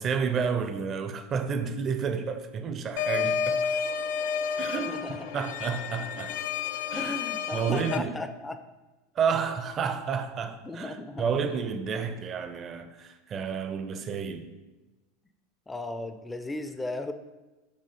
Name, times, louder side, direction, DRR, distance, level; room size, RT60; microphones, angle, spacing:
voice 1, 0.0-3.8 4.6-4.9 5.3-6.4 6.9-7.1 7.5-8.1 9.1-14.5, right 6 dB, 35° right, 0.7 m, -30 dB
sound 1, 3.0-8.0, left 6 dB, 65° left, 0.4 m, -31 dB
voice 2, 4.7-5.2 7.0-8.6 10.6-11.2 15.7-17.1, left 2 dB, 10° left, 0.5 m, -35 dB
6.6 x 3.0 x 5.3 m
hypercardioid pair, 85°, 0 cm